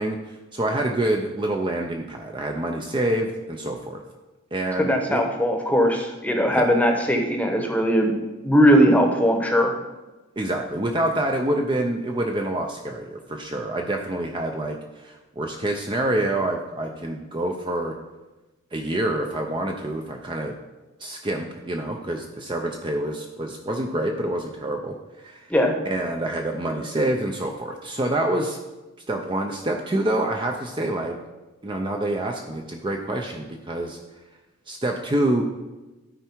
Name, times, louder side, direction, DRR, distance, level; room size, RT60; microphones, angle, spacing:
voice 1, 0.0-4.0 4.5-5.2 6.6-6.7 10.4-18.0 18.7-20.5 21.0-25.5 25.8-28.6 29.1-31.2 31.6-34.0 34.7-35.4, right 1 dB, 25° right, 2 dB, 0.5 m, -27 dB
voice 2, 4.8-8.1 8.4-9.7 25.5-25.7, equal, 5° left, 3 dB, 0.9 m, -19 dB
13.0 x 4.6 x 4.5 m, 1.1 s
head